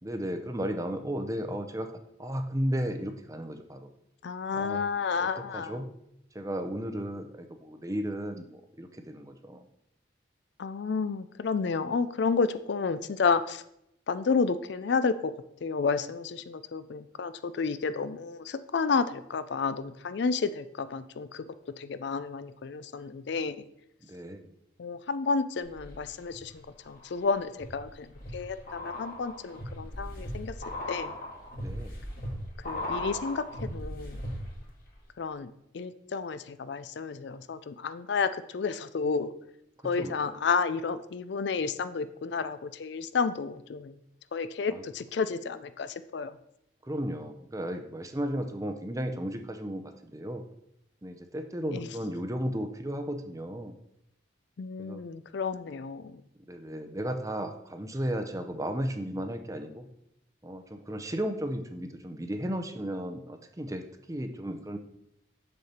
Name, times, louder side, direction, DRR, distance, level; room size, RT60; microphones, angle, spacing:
voice 1, 0.0-1.9 2.2-3.9 4.5-4.9 5.2-5.9 6.3-9.7 24.1-24.5 31.6-31.9 40.0-40.4 44.7-44.8 46.8-50.4 51.0-53.7 54.8-55.0 56.5-59.9 60.4-64.8, equal, 15° right, 6 dB, 0.6 m, -34 dB
voice 2, 4.2-5.8 10.6-13.6 14.1-15.3 15.6-21.4 21.8-23.6 24.8-30.5 30.9-31.1 32.6-34.2 35.2-39.3 39.8-44.0 44.3-46.3 51.7-51.9 54.6-56.2, left 5 dB, 60° left, 13 dB, 0.4 m, -31 dB
sound 1, 25.6-26.4 26.8-34.7 35.0-35.1, left 1 dB, 45° left, 2.0 m, -38 dB
6.7 x 6.6 x 4.3 m, 0.78 s
head